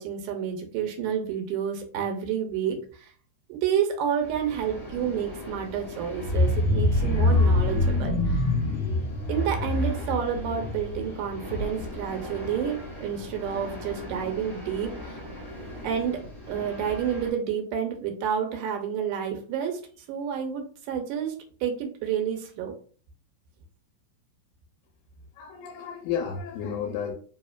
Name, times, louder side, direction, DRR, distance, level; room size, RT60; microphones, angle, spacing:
voice 1, 0.0-3.1 3.5-8.4 9.3-15.2 15.8-19.8 20.1-21.4 21.6-22.8, right 8 dB, 85° right, 4 dB, 2.2 m, -29 dB
sound 1, 4.2-17.3, equal, 25° left, 0.8 m, -40 dB
sound 2, 6.2-12.0 12.3-12.6 12.9-13.0, left 2 dB, 75° left, 1.8 m, -25 dB
voice 2, 25.3-27.1, left 7 dB, 90° left, 3 dB, 2.2 m, -32 dB
4.8 x 2.8 x 2.3 m, 0.43 s
omnidirectional pair, 3.8 m